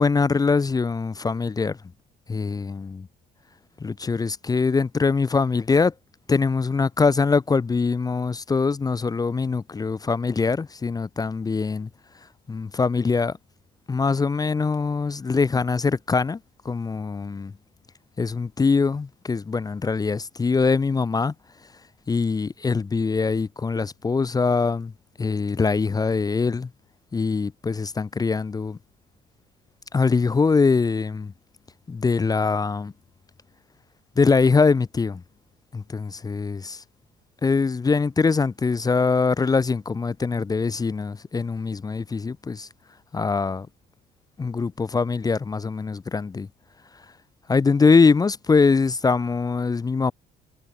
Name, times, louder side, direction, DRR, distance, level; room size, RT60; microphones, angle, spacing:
voice 1, 0.0-1.8 2.3-3.1 3.8-5.9 6.3-11.9 12.5-13.4 13.9-16.4 16.6-17.5 18.2-21.3 22.1-24.9 25.2-26.7 27.1-28.8 29.9-31.3 31.9-32.9 34.2-35.2 35.7-36.8 37.4-42.7 43.1-43.7 44.4-46.5 47.5-50.1, left 4 dB, 20° left, 0.9 m, -23 dB
cardioid pair, 110°, 17 cm